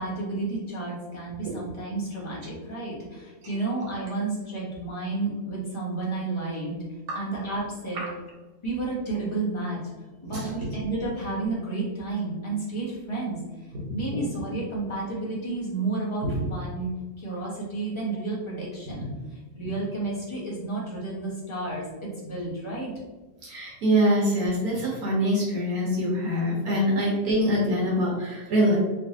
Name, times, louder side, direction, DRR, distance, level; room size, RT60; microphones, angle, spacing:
voice 1, 0.0-6.8 7.1-8.0 8.6-9.8 10.2-13.4 13.9-16.9 17.2-22.9, right 3 dB, 20° left, -6 dB, 0.8 m, -31 dB
voice 2, 10.2-10.7 13.7-13.8 16.2-16.5 23.4-28.8, equal, 65° right, -4 dB, 1.3 m, -24 dB
3.2 x 2.9 x 2.8 m, 1.2 s
omnidirectional pair, 1.8 m